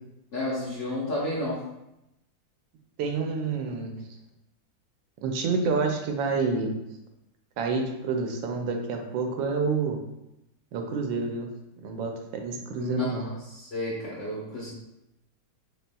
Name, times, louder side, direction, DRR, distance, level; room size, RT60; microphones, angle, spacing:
voice 1, 0.3-1.6 12.8-13.2 13.5-14.7, left 1 dB, 55° left, -6 dB, 0.8 m, -31 dB
voice 2, 3.0-4.0 5.2-6.8 7.6-10.0 10.7-11.5 11.8-13.3, right 4 dB, 80° right, 3 dB, 1.3 m, -28 dB
4.3 x 3.5 x 2.2 m, 0.88 s
omnidirectional pair, 2.1 m